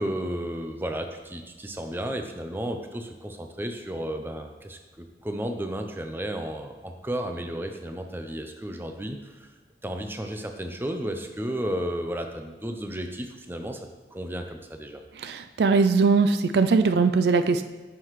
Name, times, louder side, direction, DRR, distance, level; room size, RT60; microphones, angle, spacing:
voice 1, 0.0-9.5 9.8-15.0, right 1 dB, 10° right, 5 dB, 0.5 m, -33 dB
voice 2, 15.2-17.6, right 4 dB, 65° right, 9 dB, 0.4 m, -21 dB
9.6 x 5.9 x 3.1 m, 1.3 s
head